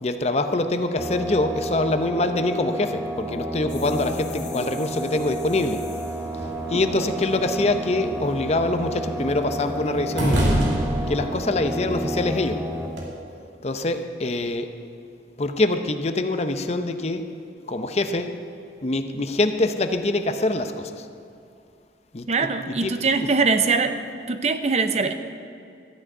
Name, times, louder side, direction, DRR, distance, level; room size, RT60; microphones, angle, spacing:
voice 1, 0.0-5.9 6.7-10.5 11.1-12.6 13.6-14.7 15.4-17.2 17.6-18.3 18.8-21.1 22.1-23.0 23.2-23.3, left 2 dB, 35° left, 8 dB, 0.6 m, -24 dB
sound 1, 1.0-12.9, right 1 dB, 10° right, 0.8 m, -31 dB
sound 2, 3.7-6.5, left 4 dB, 70° left, 1.6 m, -42 dB
sound 3, 6.3-13.0, equal, 85° right, 2.8 m, -29 dB
voice 2, 22.3-24.0 24.3-25.1, right 4 dB, 35° right, 9 dB, 0.6 m, -22 dB
13.5 x 6.3 x 9.2 m, 2.4 s
head